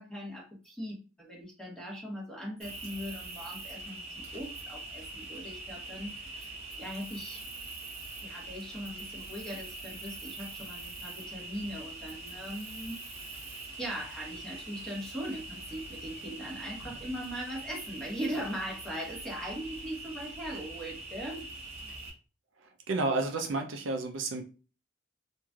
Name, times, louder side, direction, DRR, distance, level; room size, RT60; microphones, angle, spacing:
voice 1, 0.0-4.0 4.3-7.5 8.2-13.0 13.8-21.5, equal, 5° left, -3 dB, 1.0 m, -40 dB
Cricket, 2.6-22.1, right 2 dB, 30° right, 0.9 m, -43 dB
voice 2, 22.6-24.4, right 3 dB, 65° right, 4 dB, 0.5 m, -31 dB
3.1 x 2.5 x 2.3 m, 0.34 s
head